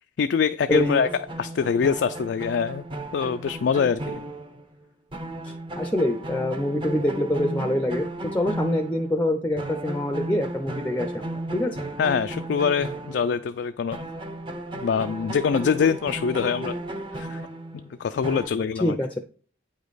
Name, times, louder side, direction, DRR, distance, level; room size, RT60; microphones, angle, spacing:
voice 1, 0.2-1.1 1.4-2.8 3.1-4.2 12.0-14.0 14.7-16.8 17.1-17.4 17.7-19.0, left 6 dB, 70° left, 9 dB, 0.3 m, -24 dB
voice 2, 0.7-1.0 5.4-11.2 11.5-11.8 18.8-19.1, left 1 dB, 10° left, 6 dB, 0.5 m, -25 dB
sound 1, 0.7-4.8 5.1-9.2 9.6-13.7 13.9-18.5, right 1 dB, 30° right, 0.8 m, -34 dB
8.7 x 5.1 x 4.0 m, 0.41 s
head